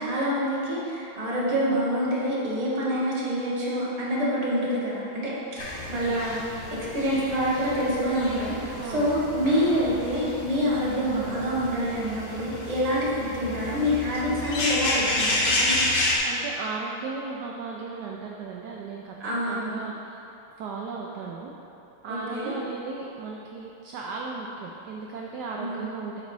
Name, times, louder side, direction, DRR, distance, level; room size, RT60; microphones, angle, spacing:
voice 1, 0.0-5.6 5.9-6.3 6.7-15.8 19.2-19.8 22.1-22.5 25.6-25.9, equal, 25° right, -7 dB, 1.1 m, -26 dB
sound 1, 5.6-16.2, left 1 dB, 55° left, 0.5 m, -30 dB
voice 2, 8.8-9.1 16.3-19.1 19.5-20.2 20.6-21.5 22.0-26.2, right 4 dB, 75° right, -1 dB, 0.9 m, -36 dB
8.3 x 3.9 x 4.6 m, 2.9 s
omnidirectional pair, 2.3 m